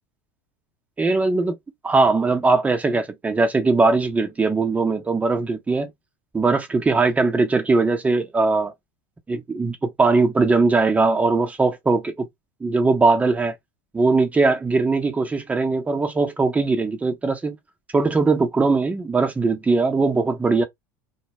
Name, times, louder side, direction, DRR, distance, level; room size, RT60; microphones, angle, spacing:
voice 1, 1.0-1.6 1.8-5.9 6.3-8.7 9.3-12.3 12.6-13.5 13.9-17.6 17.9-20.6, right 3 dB, 15° right, 0.8 m, -20 dB
2.2 x 2.2 x 2.9 m
hypercardioid pair, 100°, 10 cm